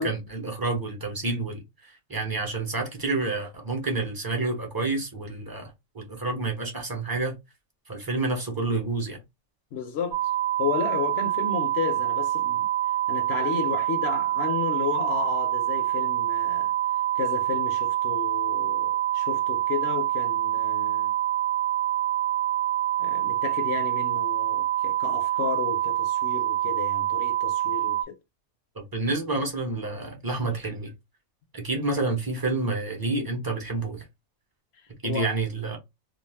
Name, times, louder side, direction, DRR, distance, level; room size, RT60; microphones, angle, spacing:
voice 1, 0.0-1.6 2.1-7.4 7.9-9.2 28.8-30.9 31.5-34.1 35.0-35.8, right 3 dB, 20° right, 0.6 m, -29 dB
voice 2, 9.7-10.2 10.6-12.7 13.1-16.7 17.1-21.1 23.0-28.2 35.0-35.4, left 7 dB, 60° left, 0.8 m, -32 dB
sound 1, 10.1-28.0, right 13 dB, 55° right, 0.8 m, -26 dB
2.4 x 2.4 x 3.3 m
omnidirectional pair, 1.4 m